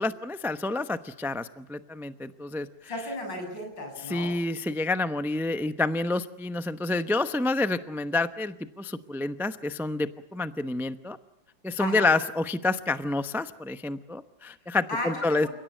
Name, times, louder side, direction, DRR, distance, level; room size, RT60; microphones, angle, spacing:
voice 1, 0.0-2.7 4.1-11.2 11.6-15.5, left 2 dB, 5° right, 10 dB, 0.3 m, -28 dB
voice 2, 2.9-4.3 11.8-12.1 14.9-15.5, left 1 dB, 80° left, 3 dB, 8.0 m, -34 dB
29.5 x 17.5 x 9.1 m, 0.82 s
omnidirectional pair, 2.0 m